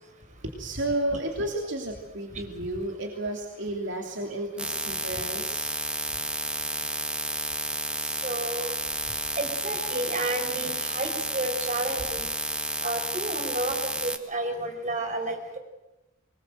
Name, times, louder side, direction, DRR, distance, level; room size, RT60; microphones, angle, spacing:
voice 1, 0.6-5.7, right 1 dB, 60° right, 2 dB, 3.1 m, -32 dB
sound 1, 4.6-14.2, right 2 dB, 5° right, 1.7 m, -31 dB
voice 2, 8.2-8.7 9.4-12.3 12.8-13.8 14.0-15.6, right 2 dB, 40° right, 5 dB, 5.0 m, -31 dB
25.0 x 21.0 x 7.9 m, 1.0 s
head